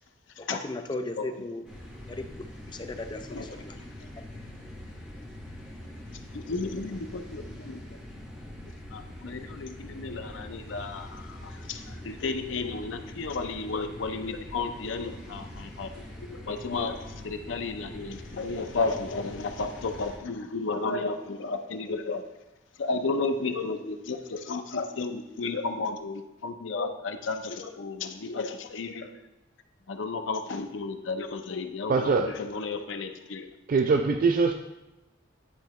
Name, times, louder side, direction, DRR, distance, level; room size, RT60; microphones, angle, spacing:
voice 1, 0.4-1.7 2.1-3.8 4.2-4.3 10.0-10.2, left 2 dB, 25° left, 6 dB, 0.4 m, -37 dB
sound 1, 1.6-20.2, left 1 dB, 5° right, 1.4 m, -43 dB
voice 2, 6.3-8.0 8.9-15.9 16.2-22.2 22.8-29.1 29.9-33.5, left 3 dB, 70° left, 7 dB, 0.5 m, -33 dB
voice 3, 31.9-32.3 33.7-34.5, right 4 dB, 45° right, 5 dB, 0.3 m, -23 dB
9.9 x 3.8 x 3.1 m, 0.95 s
head